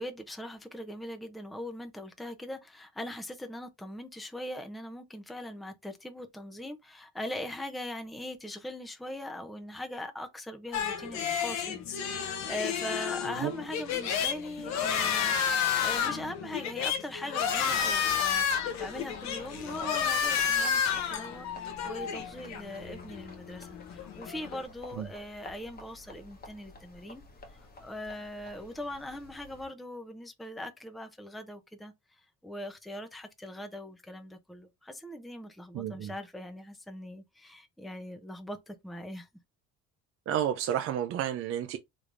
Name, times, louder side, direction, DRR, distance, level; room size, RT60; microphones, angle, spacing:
voice 1, 0.0-27.2 27.5-39.3, left 1 dB, ahead, 0.6 m, -41 dB
sound 1, 10.7-24.6, left 7 dB, 70° left, 0.8 m, -31 dB
sound 2, 17.7-29.7, left 2 dB, 35° left, 1.1 m, -50 dB
voice 2, 35.7-36.1 40.3-41.8, right 10 dB, 55° right, 0.5 m, -31 dB
3.3 x 3.1 x 2.5 m
cardioid pair, 105°, 29 cm